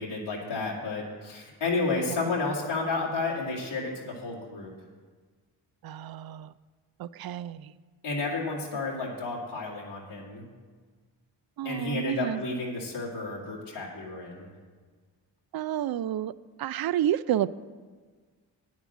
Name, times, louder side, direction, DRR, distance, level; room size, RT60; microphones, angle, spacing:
voice 1, 0.0-4.7 8.0-10.5 11.6-14.5, left 3 dB, 90° left, -4 dB, 2.2 m, -31 dB
voice 2, 5.8-6.5 7.0-7.7 11.6-12.4 15.5-16.3 16.6-17.5, right 11 dB, 50° right, 17 dB, 0.5 m, -30 dB
9.3 x 7.4 x 7.2 m, 1.5 s
supercardioid pair, 45°, 47 cm